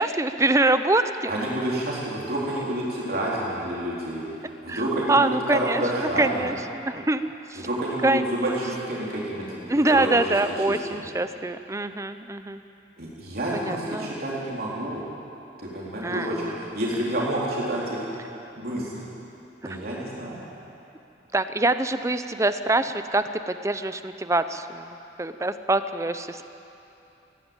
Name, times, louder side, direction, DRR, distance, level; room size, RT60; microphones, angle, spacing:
voice 1, 0.0-1.3 4.7-4.8 5.1-5.8 6.2-7.7 8.0-8.6 9.7-12.6 13.5-14.1 16.0-16.5 19.6-19.8 21.3-26.4, right 2 dB, 15° right, 10 dB, 0.6 m, -25 dB
voice 2, 1.3-6.5 7.6-10.3 10.9-11.0 13.0-15.0 15.6-18.0 18.5-19.1 19.6-20.4, right 1 dB, 55° right, -6 dB, 4.0 m, -29 dB
19.5 x 15.5 x 9.0 m, 2.8 s
head